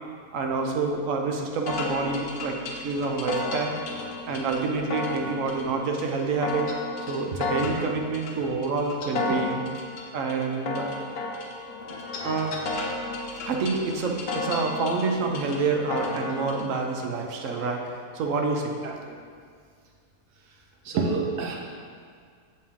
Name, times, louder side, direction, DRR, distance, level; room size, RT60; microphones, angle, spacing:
voice 1, 0.3-2.5 2.8-3.7 4.2-6.6 7.1-9.6 10.1-10.9 12.2-12.6 13.5-17.8 18.1-18.8, right 4 dB, 65° right, 2 dB, 1.0 m, -27 dB
sound 1, 1.7-16.7, left 3 dB, 75° left, 1.2 m, -33 dB
voice 2, 18.8-19.1 20.8-21.6, right 4 dB, 85° right, 0 dB, 1.3 m, -28 dB
7.4 x 4.3 x 3.6 m, 2.1 s
omnidirectional pair, 1.6 m